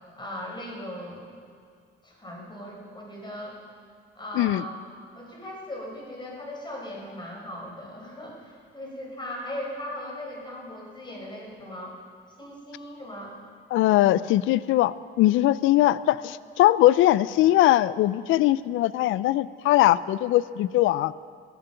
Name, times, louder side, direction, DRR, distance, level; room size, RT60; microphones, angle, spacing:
voice 1, 0.2-1.3 2.0-3.6 4.1-4.8 5.1-12.0 12.4-13.4, left 1 dB, 25° left, -2 dB, 4.9 m, -38 dB
voice 2, 13.7-21.1, left 15 dB, 85° left, 18 dB, 0.4 m, -21 dB
16.0 x 13.5 x 5.8 m, 2.2 s
cardioid pair, 90°, 20 cm